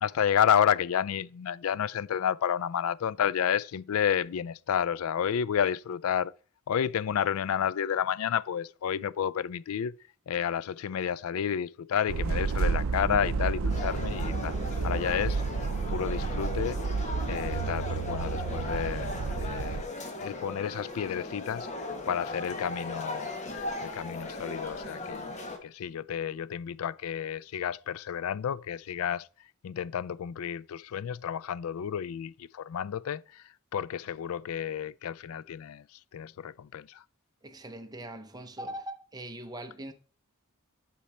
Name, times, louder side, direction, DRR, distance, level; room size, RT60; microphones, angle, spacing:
voice 1, 0.0-6.3 6.7-9.9 10.3-14.6 14.8-15.4 15.9-17.0 17.2-19.9 20.2-25.3 25.6-29.3 29.6-33.4 33.7-35.8 36.1-37.0, left 8 dB, 75° left, 0.4 m, -31 dB
sound 1, 12.1-19.8, right 4 dB, 70° right, 0.5 m, -31 dB
sound 2, 13.7-25.6, left 2 dB, 35° left, 1.4 m, -38 dB
voice 2, 37.4-39.9, right 1 dB, 20° right, 0.8 m, -41 dB
8.5 x 6.0 x 4.3 m
head